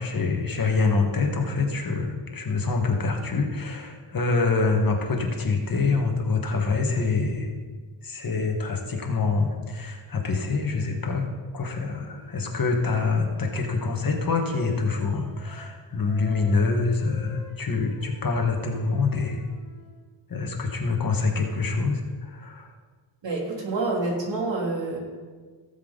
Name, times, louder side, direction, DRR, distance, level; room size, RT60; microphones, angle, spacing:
voice 1, 0.0-7.5 8.0-11.3 11.5-19.4 20.3-22.7, left 4 dB, 50° left, 2 dB, 1.7 m, -25 dB
Wind instrument woodwind instrument, 12.0-15.8 16.0-20.0, left 3 dB, 90° left, 2.8 m, -50 dB
voice 2, 23.2-25.0, right 2 dB, 70° right, -2 dB, 3.1 m, -27 dB
17.5 x 7.3 x 4.0 m, 1.5 s
wide cardioid pair, 130°, 46 cm